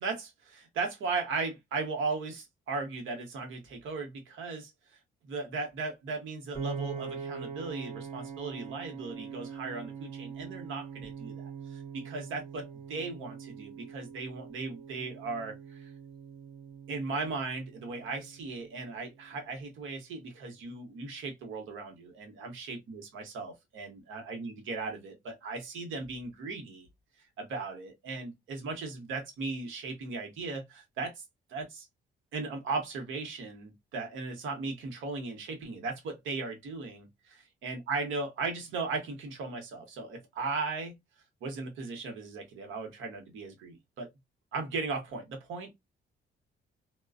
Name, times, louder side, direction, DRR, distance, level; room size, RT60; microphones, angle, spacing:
voice 1, 0.0-4.7 5.2-15.9 16.9-26.9 27.4-31.2 31.5-31.9 32.3-40.9 41.4-44.1 44.5-45.7, right 4 dB, 80° right, 1.0 m, -37 dB
Piano, 6.5-18.8, right 6 dB, 30° right, 1.1 m, -43 dB
2.4 x 2.3 x 2.3 m
cardioid pair, 90°, 20 cm